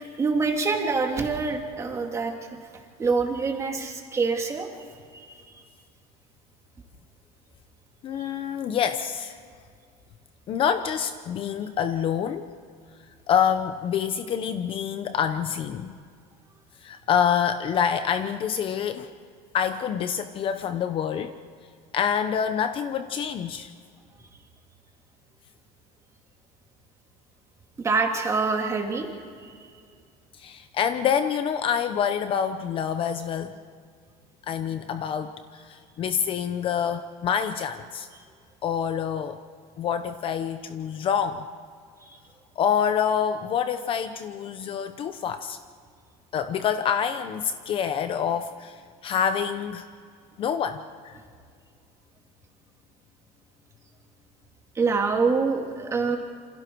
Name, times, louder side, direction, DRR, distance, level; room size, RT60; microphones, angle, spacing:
voice 1, 0.2-2.3 3.0-4.7 5.1-5.4 8.2-8.3 27.8-29.1 29.4-29.5 42.1-42.2 54.8-56.2, right 4 dB, 20° right, 2 dB, 2.5 m, -25 dB
voice 2, 8.0-9.4 10.5-12.5 13.3-16.0 16.8-19.1 19.5-21.3 21.9-23.7 30.3-33.6 34.5-38.1 38.6-39.4 39.8-41.4 42.6-45.6 46.3-49.9 50.4-51.2, left 8 dB, 35° left, 9 dB, 0.8 m, -26 dB
28.0 x 27.0 x 4.6 m, 2.1 s
cardioid pair, 170°, 16 cm